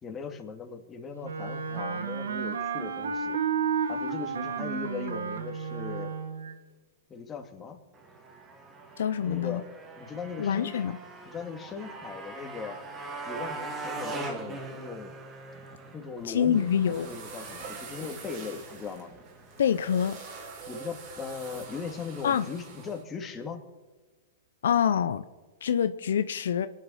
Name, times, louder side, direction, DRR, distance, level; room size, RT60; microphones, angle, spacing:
voice 1, 0.0-3.4 3.9-6.2 7.1-7.8 9.2-9.7 9.9-10.8 11.3-12.8 13.2-15.2 15.9-19.1 20.7-23.6, left 5 dB, 20° left, 2.4 m, -39 dB
Wind instrument woodwind instrument, 1.2-6.6, right 6 dB, 80° right, 1.9 m, -32 dB
Motorcycle, 7.9-20.1, right 3 dB, 20° right, 2.7 m, -42 dB
voice 2, 9.0-9.6 10.4-10.9 16.2-17.1 19.6-20.2 22.2-22.4 24.6-25.2 25.6-26.7, left 8 dB, 75° left, 0.7 m, -26 dB
sound 1, 16.2-23.0, right 4 dB, 45° right, 4.3 m, -45 dB
25.5 x 9.9 x 5.7 m
hypercardioid pair, 120°, 0 cm